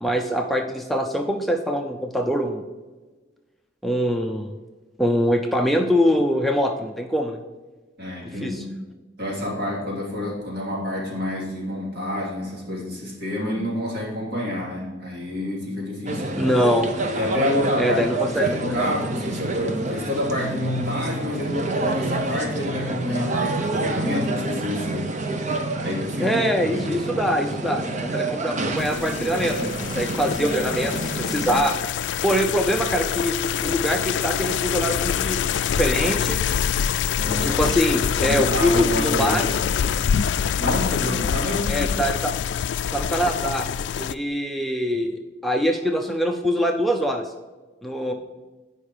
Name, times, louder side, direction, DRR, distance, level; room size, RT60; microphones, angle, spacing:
voice 1, 0.0-2.6 3.8-4.5 5.0-7.4 8.4-8.6 16.4-16.9 17.8-18.7 26.2-31.8 32.2-33.3 33.6-36.4 37.2-39.7 41.7-42.3 42.9-43.7 43.9-47.3 47.8-48.1, equal, ahead, 2 dB, 0.5 m, -23 dB
voice 2, 8.0-8.7 9.2-16.5 17.2-18.0 18.3-25.2 25.8-26.9 37.2-37.7 38.2-39.8 40.6-41.8, left 1 dB, 60° right, -3 dB, 2.9 m, -28 dB
sound 1, 16.1-31.6, right 2 dB, 45° right, 0.8 m, -28 dB
sound 2, 28.8-44.1, left 8 dB, 75° left, 0.3 m, -25 dB
8.8 x 5.4 x 4.9 m, 1.3 s
head